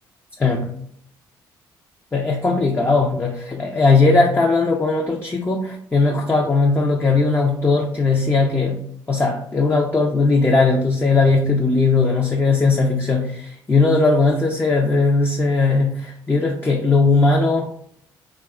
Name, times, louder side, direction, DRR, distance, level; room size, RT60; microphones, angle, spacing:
voice 1, 0.4-0.7 2.1-17.7, left 3 dB, 20° left, 1 dB, 0.4 m, -18 dB
2.8 x 2.3 x 2.2 m, 0.64 s
supercardioid pair, 65°, 9 cm